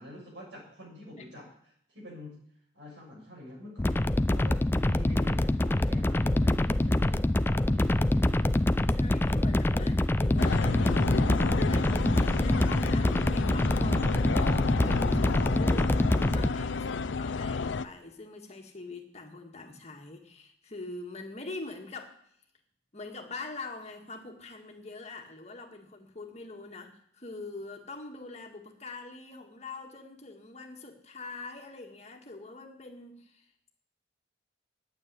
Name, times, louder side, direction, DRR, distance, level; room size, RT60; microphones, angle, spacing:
voice 1, 0.0-1.4 1.9-2.3 2.7-3.8 4.3-8.4, left 1 dB, 75° right, -2 dB, 6.9 m, -46 dB
sound 1, 3.8-16.5, left 1 dB, 10° left, 0.4 m, -25 dB
voice 2, 8.9-22.2 22.9-33.7, left 3 dB, 35° left, 3 dB, 1.8 m, -44 dB
sound 2, 10.4-17.8, left 4 dB, 85° left, 0.5 m, -31 dB
9.2 x 8.8 x 9.7 m, 0.67 s
head